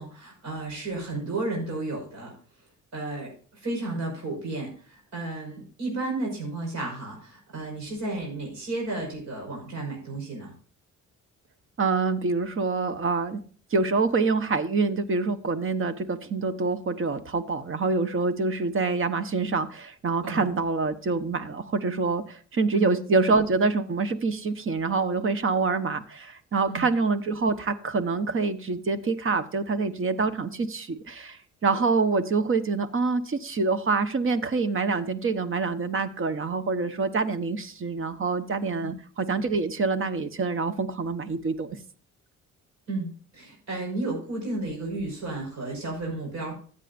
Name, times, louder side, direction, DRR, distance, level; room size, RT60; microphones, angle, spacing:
voice 1, 0.0-2.3 2.9-10.5 20.2-20.4 22.7-22.9 26.7-26.9 38.8-38.9 42.9-46.5, right 2 dB, 65° right, -1 dB, 5.7 m, -33 dB
voice 2, 11.8-13.4 13.7-41.8, right 4 dB, 45° right, 11 dB, 1.2 m, -26 dB
15.5 x 8.4 x 2.6 m, 0.43 s
cardioid pair, 90°, 30 cm